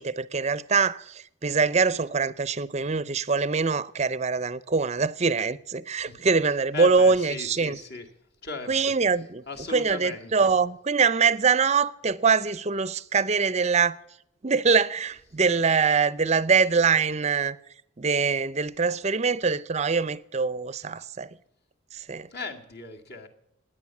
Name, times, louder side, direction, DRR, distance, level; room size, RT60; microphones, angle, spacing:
voice 1, 0.0-7.8 8.7-9.4 9.7-14.0 14.4-17.6 18.0-21.4 21.9-22.3, right 5 dB, 30° right, 0.5 m, -24 dB
voice 2, 6.7-8.1 8.4-8.9 9.5-10.5 22.3-23.3, left 4 dB, 50° left, 2.1 m, -37 dB
17.5 x 10.0 x 7.2 m
head